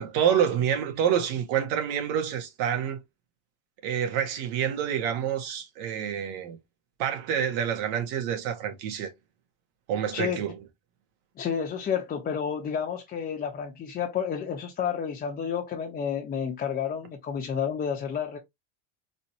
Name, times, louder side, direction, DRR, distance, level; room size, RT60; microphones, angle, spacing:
voice 1, 0.0-3.0 3.8-6.6 7.0-9.1 9.9-10.6, right 9 dB, 65° right, 1.6 m, -27 dB
voice 2, 10.1-10.4 11.4-18.4, left 7 dB, 25° left, 1.0 m, -30 dB
4.2 x 3.0 x 2.9 m
supercardioid pair, 130°, 35 cm